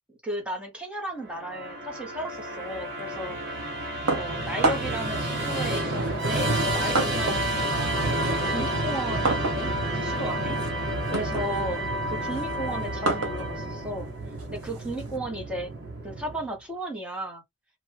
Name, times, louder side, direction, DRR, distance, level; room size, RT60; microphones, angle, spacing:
voice 1, 0.2-3.4 4.1-8.1 8.5-10.6 11.1-15.7 16.0-17.4, right 1 dB, 5° right, 0.8 m, -35 dB
Musical instrument, 1.3-16.6, right 1 dB, 50° right, 0.8 m, -30 dB
sound 1, 4.1-5.1 6.0-7.5 7.9-15.2, right 3 dB, 90° right, 0.9 m, -31 dB
2.7 x 2.2 x 2.7 m
head